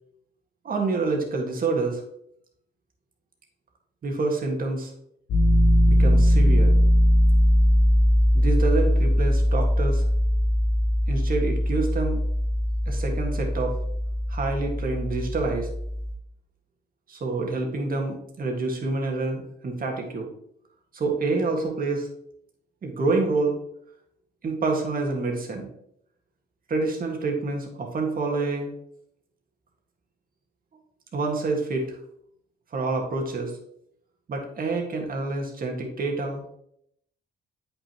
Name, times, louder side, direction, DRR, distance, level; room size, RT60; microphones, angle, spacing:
voice 1, 0.6-2.0 4.0-4.9 5.9-6.7 8.3-10.0 11.1-12.2 12.9-13.8 14.3-15.7 17.1-20.3 20.9-22.1 22.8-23.6 24.4-25.7 26.7-28.7 31.1-32.0 32.7-33.6 34.3-36.6, right 3 dB, 45° right, 1 dB, 1.8 m, -27 dB
Piano, 5.3-16.1, equal, 90° left, 2.5 m, -21 dB
8.4 x 5.8 x 3.0 m, 0.74 s
cardioid pair, 90°, 20 cm